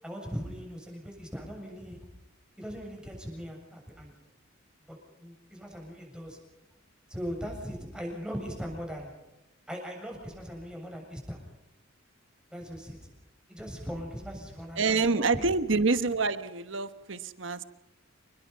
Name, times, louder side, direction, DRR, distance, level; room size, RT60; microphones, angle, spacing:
voice 1, 0.0-2.0 2.6-4.1 4.9-6.4 7.1-9.1 9.7-11.4 12.5-13.1 13.5-15.0 15.3-15.4, equal, 5° right, 0 dB, 7.5 m, -39 dB
voice 2, 14.8-17.6, right 4 dB, 60° right, 11 dB, 1.2 m, -27 dB
28.5 x 21.0 x 5.7 m, 0.96 s
head